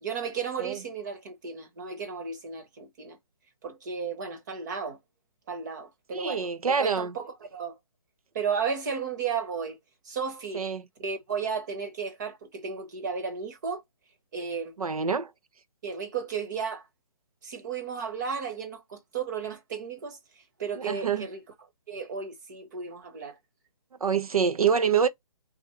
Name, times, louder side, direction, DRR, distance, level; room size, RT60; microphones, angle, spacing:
voice 1, 0.0-3.2 3.6-5.0 5.5-7.8 8.3-9.8 10.0-10.6 11.0-13.8 14.3-14.7 15.8-16.8 17.4-20.2 20.6-21.4 21.9-23.4, right 6 dB, 30° right, 1.1 m, -34 dB
voice 2, 6.1-7.1 10.5-10.8 14.8-15.3 20.8-21.3 24.0-25.1, right 6 dB, 80° right, 0.8 m, -26 dB
3.6 x 2.6 x 4.4 m
hypercardioid pair, 160°, 18 cm